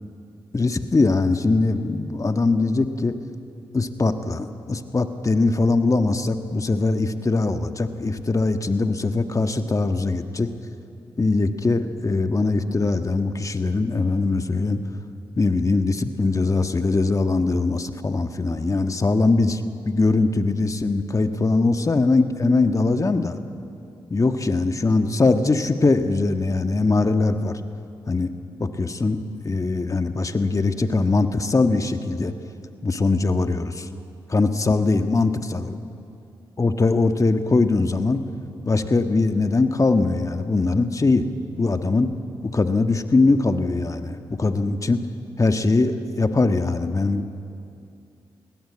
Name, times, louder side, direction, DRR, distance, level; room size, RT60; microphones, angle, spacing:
voice 1, 0.5-3.2 3.7-10.5 11.2-14.8 15.4-23.4 24.1-27.6 28.1-28.3 28.6-32.3 32.8-33.9 34.3-35.8 36.6-38.2 38.6-41.2 41.6-42.1 42.4-45.0 45.4-47.3, left 3 dB, 35° left, 8 dB, 1.4 m, -21 dB
22.0 x 17.5 x 8.6 m, 2.6 s
supercardioid pair, 45°, 10 cm